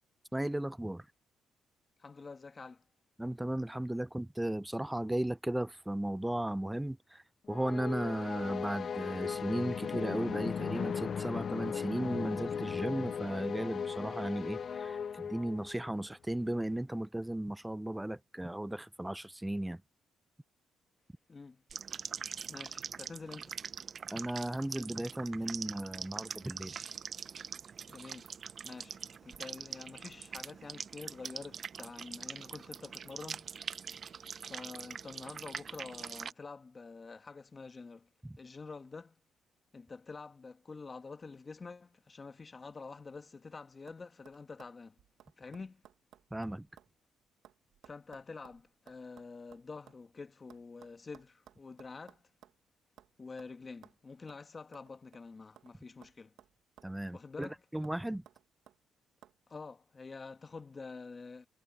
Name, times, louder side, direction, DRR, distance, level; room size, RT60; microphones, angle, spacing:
voice 1, 0.3-1.1 3.2-7.2 7.5-19.8 24.1-26.7 38.2-38.4 46.3-46.7 56.8-58.2, right 1 dB, 5° right, 0.6 m, -36 dB
voice 2, 2.0-2.8 21.3-21.6 22.5-23.5 27.9-28.3 28.6-33.5 34.4-38.1 38.4-39.2 39.7-44.9 45.4-45.8 47.8-52.3 53.2-56.3 57.1-57.6 59.5-61.5, left 4 dB, 30° left, 1.4 m, -47 dB
sound 1, 7.5-15.9, left 7 dB, 50° left, 0.4 m, -37 dB
sound 2, 21.7-36.3, right 6 dB, 50° right, 0.6 m, -43 dB
sound 3, 43.3-43.5 43.9-44.0 44.2-47.0 47.2-50.0 50.5-52.6 53.0-53.1 53.4-53.5 53.8-54.0 54.3-54.4 54.7-55.7 56.0-57.1 57.4-57.6 57.8-58.8 59.2-59.4, right 11 dB, 80° right, 1.1 m, -60 dB
cardioid pair, 90°, 0 cm